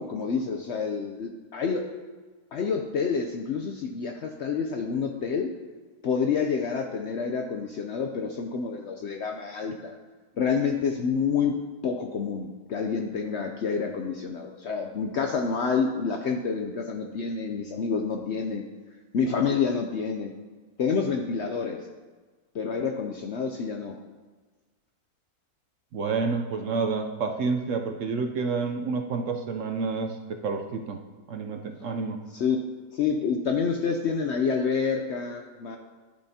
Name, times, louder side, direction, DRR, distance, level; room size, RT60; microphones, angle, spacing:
voice 1, 0.0-1.9 2.5-5.5 6.0-9.9 10.4-11.6 11.8-18.6 19.1-20.3 20.8-21.8 22.5-24.0 32.3-32.6 32.9-35.8, left 5 dB, 65° left, 3 dB, 0.7 m, -28 dB
voice 2, 25.9-30.2 30.4-31.0 31.3-32.2, right 4 dB, 65° right, 4 dB, 0.9 m, -29 dB
11.5 x 6.9 x 2.8 m, 1.4 s
omnidirectional pair, 1.6 m